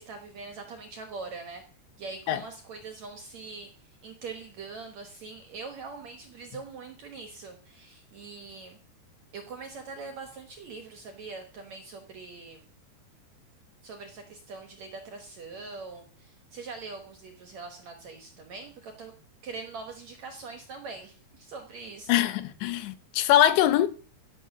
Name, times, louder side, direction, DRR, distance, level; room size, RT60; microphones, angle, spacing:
voice 1, 0.0-1.6 2.0-3.7 4.0-8.8 9.3-12.7 13.8-19.1 19.4-22.3, right 4 dB, 60° right, 1.9 m, -42 dB
voice 2, 22.1-23.9, left 12 dB, 85° left, 3.3 m, -22 dB
15.5 x 7.4 x 6.0 m
omnidirectional pair, 5.0 m